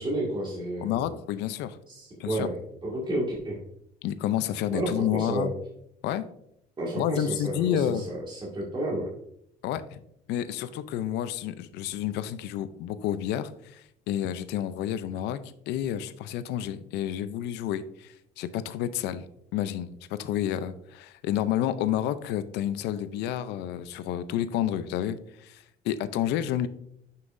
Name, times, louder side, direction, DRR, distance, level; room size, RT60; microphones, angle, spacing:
voice 1, 0.0-1.1 1.9-2.6 2.8-3.6 4.7-5.5 6.8-9.1, right 1 dB, 30° right, -3 dB, 2.0 m, -31 dB
voice 2, 0.8-1.8 2.2-2.5 4.0-5.5 6.0-6.3 7.0-8.0 9.6-10.0 10.3-15.4 15.7-19.2 19.5-26.7, left 11 dB, 85° left, 13 dB, 0.5 m, -30 dB
9.5 x 5.7 x 2.6 m, 0.75 s
cardioid pair, 110°, 17 cm